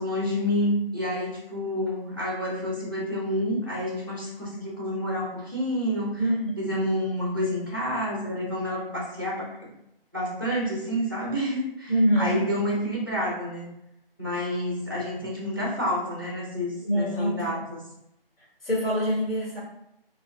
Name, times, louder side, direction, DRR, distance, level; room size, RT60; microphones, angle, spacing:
voice 1, 0.0-6.2 6.6-9.7 10.1-13.7 14.2-17.8, equal, 25° right, -3 dB, 0.5 m, -29 dB
voice 2, 6.2-6.5 11.9-12.4 16.8-17.6 18.6-19.6, equal, 70° left, -4 dB, 1.3 m, -24 dB
2.9 x 2.3 x 2.3 m, 0.81 s
figure-of-eight pair, 160°, 30 cm